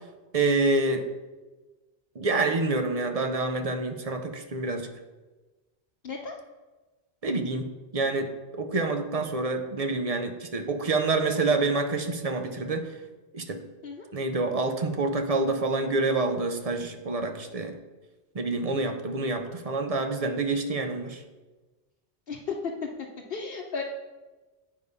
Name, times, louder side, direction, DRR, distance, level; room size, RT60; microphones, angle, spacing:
voice 1, 0.3-1.1 2.2-4.9 7.2-12.9 13.3-13.6 14.1-17.8 18.3-21.2, right 3 dB, 40° right, 6 dB, 0.8 m, -27 dB
voice 2, 6.0-6.3 13.8-14.1 18.7-18.8 22.3-22.5 23.3-23.8, left 5 dB, 60° left, -2 dB, 1.0 m, -34 dB
9.0 x 5.0 x 5.4 m, 1.2 s
omnidirectional pair, 1.1 m